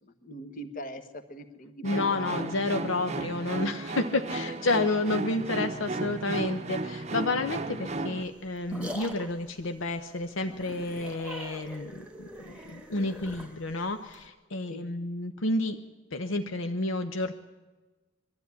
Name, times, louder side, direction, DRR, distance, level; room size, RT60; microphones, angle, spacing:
voice 1, 0.0-1.8 2.1-2.8 14.7-14.8, equal, 40° left, 9 dB, 1.3 m, -42 dB
voice 2, 1.8-15.8 16.1-17.3, left 2 dB, 65° left, 7 dB, 0.9 m, -30 dB
sound 1, 1.8-8.2, right 2 dB, 30° right, 0.8 m, -34 dB
sound 2, 8.2-14.3, right 1 dB, 5° right, 1.6 m, -43 dB
21.0 x 13.0 x 9.6 m, 1.2 s
head